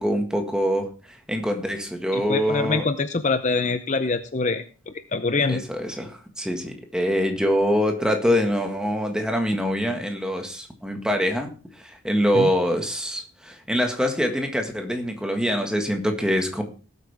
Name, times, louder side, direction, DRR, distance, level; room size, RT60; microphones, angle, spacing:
voice 1, 0.0-2.8 5.5-16.6, equal, 5° right, 4 dB, 1.7 m, -24 dB
voice 2, 2.1-5.6 12.3-12.5, left 3 dB, 35° left, 10 dB, 0.6 m, -25 dB
18.5 x 8.2 x 3.5 m, 0.37 s
head